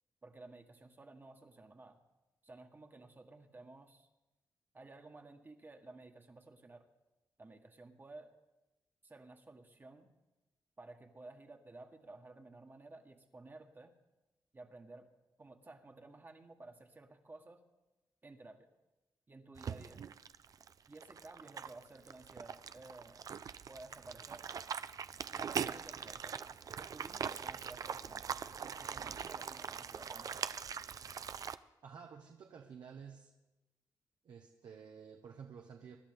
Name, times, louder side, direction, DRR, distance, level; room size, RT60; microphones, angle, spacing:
voice 1, 0.2-2.0 2.4-4.1 4.7-6.9 7.4-8.3 9.0-10.1 10.8-13.9 14.5-15.1 15.4-17.6 18.2-18.7 19.3-20.0 20.9-23.2 23.7-24.5 25.3-26.4 26.8-28.3 28.6-30.5, right 2 dB, 30° right, 3 dB, 1.5 m, -54 dB
sound 1, 19.6-31.6, right 7 dB, 55° right, 0.5 m, -42 dB
voice 2, 31.8-33.3 34.2-36.0, right 6 dB, 75° right, 2 dB, 1.2 m, -52 dB
25.0 x 11.5 x 3.7 m, 1.0 s
cardioid pair, 100°, 7 cm